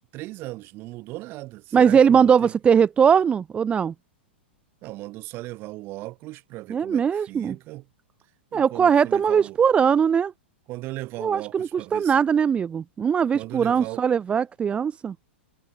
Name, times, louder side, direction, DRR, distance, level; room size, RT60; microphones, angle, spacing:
voice 1, 0.1-2.5 4.8-7.9 8.5-9.6 10.7-12.2 13.3-14.0, right 19 dB, 35° right, 1.9 m, -37 dB
voice 2, 1.7-3.9 6.7-7.6 8.5-10.3 11.2-15.1, right 7 dB, 20° right, 0.7 m, -20 dB
figure-of-eight pair, 100°, 6 cm